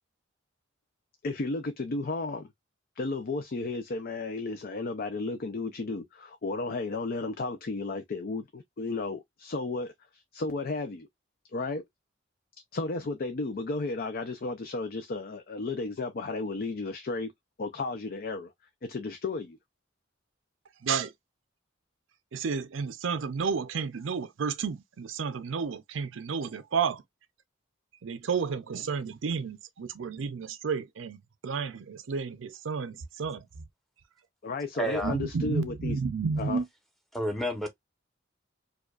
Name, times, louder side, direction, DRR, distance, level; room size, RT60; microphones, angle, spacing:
voice 1, 1.2-2.5 3.0-11.1 11.5-11.8 12.7-17.3 17.6-18.5 18.8-19.6 34.4-36.0 36.4-36.6, left 3 dB, 50° left, 0.5 m, -33 dB
voice 2, 22.3-27.0 28.0-33.5 35.0-36.7, right 5 dB, 75° right, 0.5 m, -31 dB
voice 3, 34.7-35.1 37.1-37.7, equal, ahead, 0.9 m, -30 dB
4.8 x 2.3 x 2.3 m
head